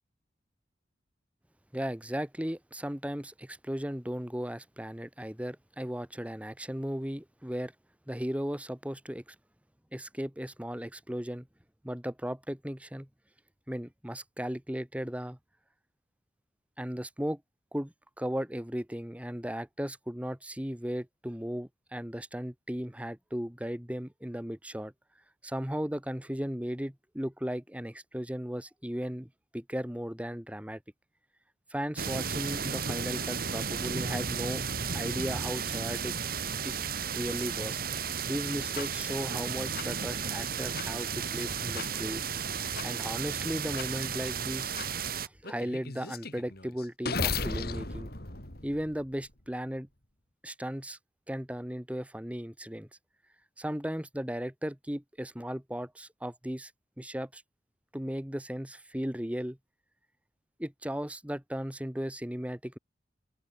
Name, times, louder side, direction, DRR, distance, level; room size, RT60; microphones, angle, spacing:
voice 1, 1.7-7.7 8.1-9.3 9.9-11.5 11.8-13.1 13.7-15.4 16.8-17.4 17.7-24.9 25.4-30.8 31.7-34.6 34.9-36.1 36.6-36.7 37.1-37.8 38.3-42.2 42.8-44.8 45.2-48.1 48.6-49.9 50.4-51.0 51.3-52.9 53.6-56.7 57.0-57.4 57.9-59.6 60.6-62.8, equal, 5° right, 1.5 m, -36 dB
sound 1, 32.0-45.3, right 6 dB, 50° right, 2.8 m, -34 dB
sound 2, 38.8-38.9 39.8-39.9 40.8-40.9 41.8-41.9 42.8-42.9 43.8-43.9 44.8-44.9 45.4-49.3, left 4 dB, 55° left, 4.3 m, -36 dB
open air
head